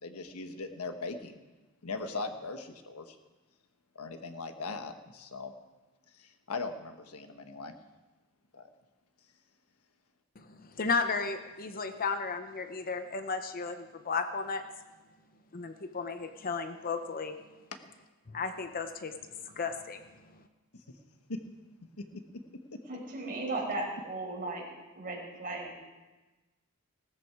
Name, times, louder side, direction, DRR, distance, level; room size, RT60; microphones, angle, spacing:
voice 1, 0.0-1.4 1.8-3.2 3.9-5.5 6.1-7.7 8.5-8.7 21.3-21.4 22.7-22.8, left 3 dB, 85° left, 7 dB, 1.3 m, -39 dB
voice 2, 10.4-14.6 15.5-17.4 18.3-19.1 19.4-20.0 20.3-20.4, left 4 dB, 40° left, 8 dB, 0.8 m, -34 dB
voice 3, 22.9-24.7 24.9-25.8, right 2 dB, 40° right, -3 dB, 5.2 m, -36 dB
18.5 x 13.5 x 4.8 m, 1.2 s
head